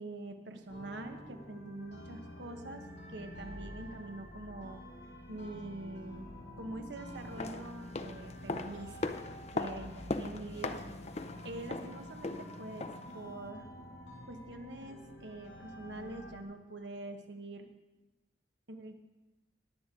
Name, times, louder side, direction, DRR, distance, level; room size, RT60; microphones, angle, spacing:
voice 1, 0.0-4.8 5.3-6.3 6.6-9.2 9.5-10.8 11.4-13.7 14.2-17.7 18.7-18.9, right 2 dB, 75° right, 6 dB, 1.2 m, -45 dB
sound 1, 0.7-16.4, left 1 dB, 75° left, 2.3 m, -48 dB
sound 2, 7.2-13.2 13.5-13.6, left 3 dB, 35° left, 0.6 m, -40 dB
20.5 x 8.3 x 3.8 m, 1.1 s
head